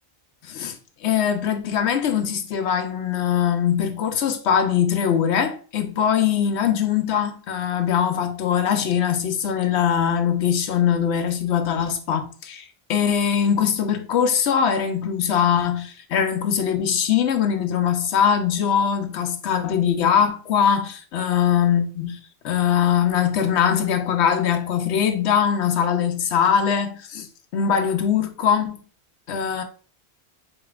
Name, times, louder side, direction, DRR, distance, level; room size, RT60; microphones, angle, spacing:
voice 1, 0.4-22.2 22.4-27.3 27.5-28.8 29.3-29.6, left 8 dB, 85° left, 0.9 m, -22 dB
5.1 x 3.9 x 2.3 m
omnidirectional pair, 1.1 m